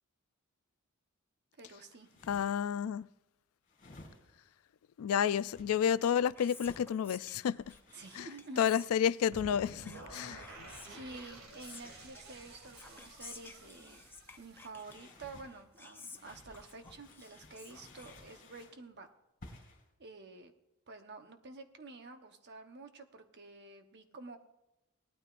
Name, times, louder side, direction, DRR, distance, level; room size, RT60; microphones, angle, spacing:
voice 1, 1.6-2.1 7.9-8.8 10.6-14.0 14.4-19.1 19.5-19.7 20.0-20.5 20.9-24.4, right 3 dB, 50° right, 1.0 m, -50 dB
sound 1, 1.9-2.8 3.6-4.5 5.3-5.7 6.5-6.9 7.6-9.1 10.1-13.9 14.7-15.5 16.1-18.8 19.4-19.9, left 2 dB, 40° left, 2.6 m, -58 dB
voice 2, 2.3-3.1 5.0-7.6 8.2-8.3 8.6-10.4, left 8 dB, 75° left, 0.3 m, -30 dB
Whispering, 6.0-18.8, left 4 dB, 10° left, 0.6 m, -55 dB
sound 2, 9.3-15.4, right 2 dB, 70° right, 2.0 m, -51 dB
18.5 x 12.5 x 2.5 m
head